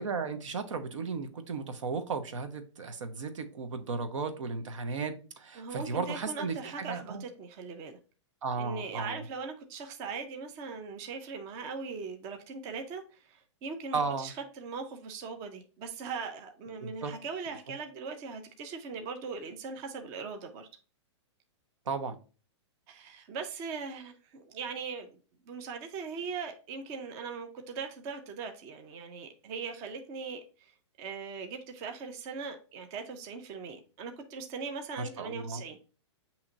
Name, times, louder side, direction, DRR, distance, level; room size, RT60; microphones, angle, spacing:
voice 1, 0.0-7.2 8.4-9.2 13.9-14.3 16.8-17.1 21.9-22.2 35.0-35.6, right 4 dB, 90° right, 0.8 m, -35 dB
voice 2, 5.6-8.0 8.6-20.7 22.9-25.2 25.5-35.8, right 5 dB, 20° right, 0.4 m, -40 dB
7.1 x 2.9 x 2.5 m
hypercardioid pair, 165°, 16 cm